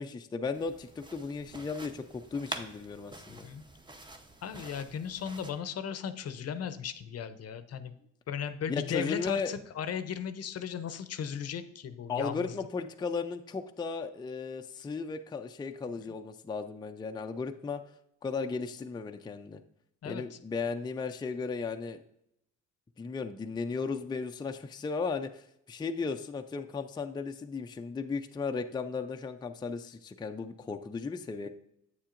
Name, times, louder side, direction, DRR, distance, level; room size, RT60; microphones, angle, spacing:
voice 1, 0.0-3.5 8.7-9.5 12.1-17.8 18.2-19.6 20.0-22.0 23.0-31.5, left 4 dB, 15° left, 6 dB, 0.4 m, -35 dB
sound 1, 0.5-5.5, right 1 dB, 15° right, 0.8 m, -46 dB
voice 2, 3.3-3.6 4.4-7.9 8.3-12.5 20.0-20.4, left 8 dB, 55° left, 11 dB, 0.6 m, -36 dB
8.3 x 7.3 x 2.5 m, 0.76 s
cardioid pair, 90°, 30 cm